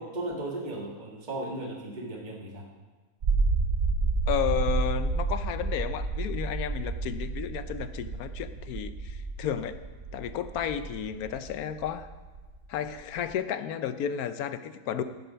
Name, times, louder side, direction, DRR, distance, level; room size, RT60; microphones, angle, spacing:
voice 1, 0.0-2.7, right 2 dB, 30° right, -2 dB, 1.9 m, -36 dB
sound 1, 3.2-13.3, right 4 dB, 50° right, 1.0 m, -30 dB
voice 2, 4.3-9.8 10.1-12.1 12.7-15.0, left 9 dB, 75° left, 11 dB, 1.1 m, -32 dB
13.0 x 7.9 x 5.7 m, 1.3 s
omnidirectional pair, 1.6 m